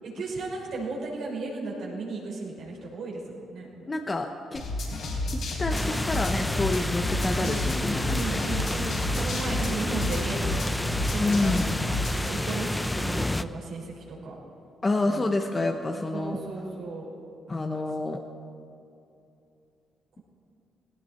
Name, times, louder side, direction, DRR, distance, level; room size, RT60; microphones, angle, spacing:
voice 1, 0.0-3.9 7.4-7.6 8.1-10.6 11.0-11.7 12.1-14.3 15.0-15.3 16.1-17.1, right 3 dB, 70° right, -2 dB, 5.1 m, -35 dB
voice 2, 3.9-4.6 5.3-8.5 11.2-11.7 14.8-16.4 17.5-18.2, left 2 dB, 25° left, 4 dB, 0.9 m, -28 dB
sound 1, 4.5-12.3, left 1 dB, 70° left, 4.3 m, -31 dB
sound 2, 5.7-13.4, left 1 dB, 10° left, 0.5 m, -30 dB
18.0 x 18.0 x 4.4 m, 2.7 s
cardioid pair, 90°, 0 cm